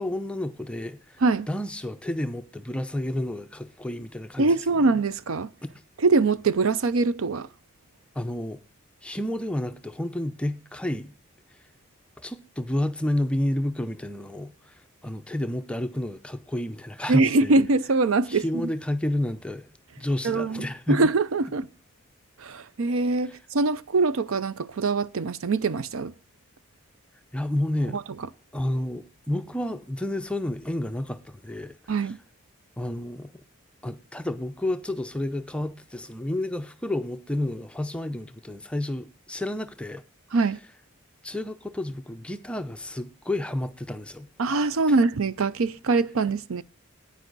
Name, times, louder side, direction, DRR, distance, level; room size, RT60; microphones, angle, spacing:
voice 1, 0.0-4.5 8.1-8.6 9.0-11.1 12.2-17.5 18.3-19.7 20.0-21.0 23.3-23.4 27.3-28.0 28.5-32.1 32.8-33.3 33.8-40.0 41.2-44.3 44.9-45.0, left 1 dB, 5° left, 0.5 m, -30 dB
voice 2, 4.4-5.5 6.0-7.5 17.1-18.4 20.2-21.7 22.4-26.1 27.9-28.0 31.9-32.2 40.3-40.6 44.4-46.6, right 3 dB, 70° right, 0.5 m, -23 dB
9.8 x 9.1 x 3.9 m
head